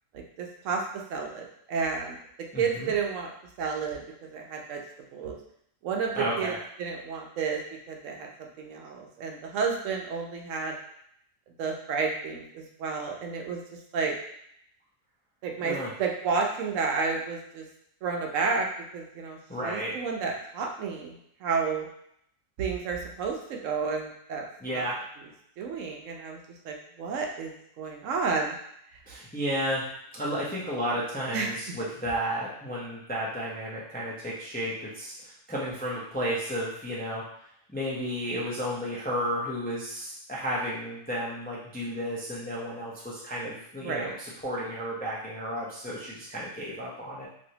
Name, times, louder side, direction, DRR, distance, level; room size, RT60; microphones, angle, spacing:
voice 1, 0.1-0.8 1.1-2.2 2.6-3.3 3.6-4.8 5.1-5.4 5.8-6.5 6.8-7.6 7.9-10.8 11.6-13.6 13.9-14.2 15.4-17.6 18.0-18.7 18.9-19.4 19.6-21.9 22.6-24.4 24.7-24.8 25.6-26.4 26.6-28.5 31.3-31.5 43.8-44.1, right 5 dB, 80° right, 1 dB, 0.9 m, -31 dB
voice 2, 2.5-2.9 6.1-6.5 15.6-15.9 19.5-19.9 24.6-25.0 29.1-29.8 30.1-37.2 37.7-47.3, equal, 15° left, -6 dB, 0.3 m, -32 dB
3.1 x 2.6 x 2.8 m, 0.72 s
omnidirectional pair, 1.3 m